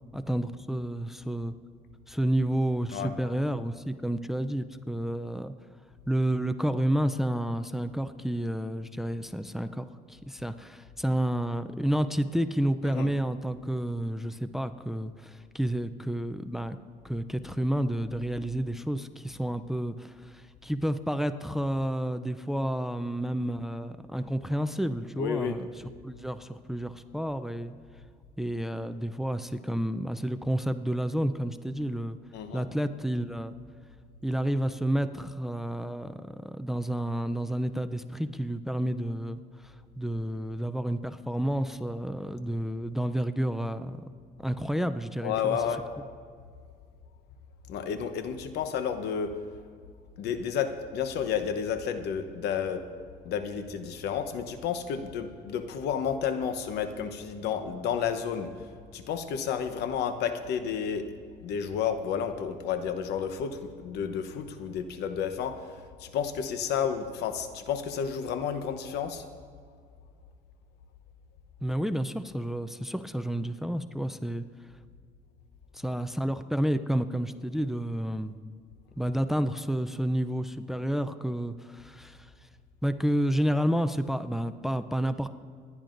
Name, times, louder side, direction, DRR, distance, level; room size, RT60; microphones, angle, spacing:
voice 1, 0.1-1.5 2.1-5.5 6.1-16.8 17.0-25.7 26.0-27.7 28.4-32.2 32.5-33.5 34.2-44.0 44.4-45.6 71.6-74.4 75.7-78.3 79.0-82.3 82.8-85.3, right 1 dB, ahead, 10 dB, 0.4 m, -30 dB
voice 2, 25.2-25.6 32.3-32.7 45.2-45.8 47.7-49.3 50.2-52.8 53.2-58.5 58.9-61.1 61.4-69.2, left 7 dB, 80° left, 9 dB, 0.9 m, -31 dB
26.5 x 10.5 x 2.6 m, 2.1 s
cardioid pair, 110°, 17 cm